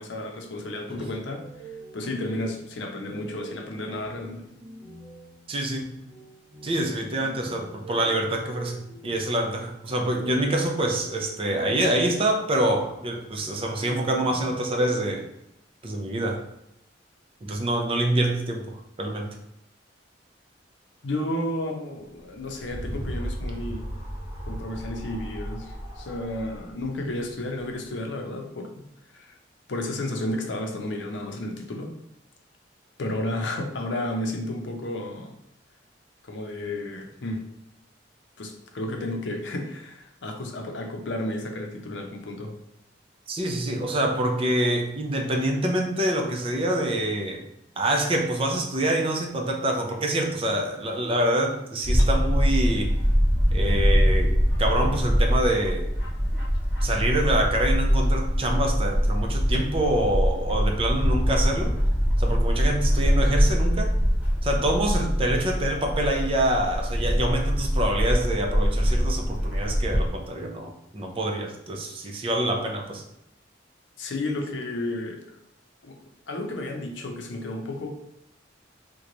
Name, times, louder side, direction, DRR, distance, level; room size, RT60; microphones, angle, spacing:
voice 1, 0.0-1.4 1.9-4.4 21.0-23.9 24.5-28.9 29.1-29.4 29.7-31.9 33.0-35.3 36.2-37.4 38.4-42.5 74.0-75.4 75.8-76.0 76.3-77.9, left 1 dB, 75° left, 3 dB, 0.6 m, -32 dB
sound 1, 1.4-15.1, right 2 dB, 55° right, 1.0 m, -46 dB
voice 2, 5.5-5.9 6.6-15.2 15.8-16.4 17.4-19.3 43.3-47.4 47.8-52.9 53.5-55.9 56.8-61.7 62.2-63.9 64.4-73.0, right 1 dB, 30° right, 2 dB, 0.5 m, -26 dB
sound 2, 22.2-27.8, equal, 30° left, 1.2 m, -36 dB
Bird / Wind, 51.8-70.1, equal, 10° right, 1.1 m, -23 dB
3.0 x 2.2 x 3.8 m, 0.82 s
head